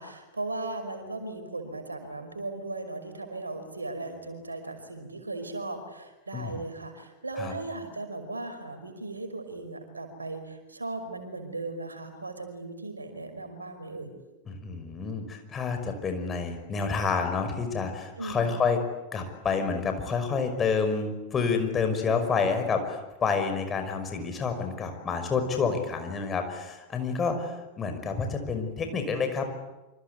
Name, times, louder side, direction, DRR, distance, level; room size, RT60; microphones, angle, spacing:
voice 1, 0.0-14.1 18.2-18.6, right 2 dB, 80° right, 7 dB, 5.2 m, -37 dB
voice 2, 14.5-18.8 19.1-29.5, left 5 dB, 20° left, 6 dB, 5.6 m, -29 dB
27.5 x 26.0 x 8.4 m, 1.1 s
figure-of-eight pair, 90°, 0 cm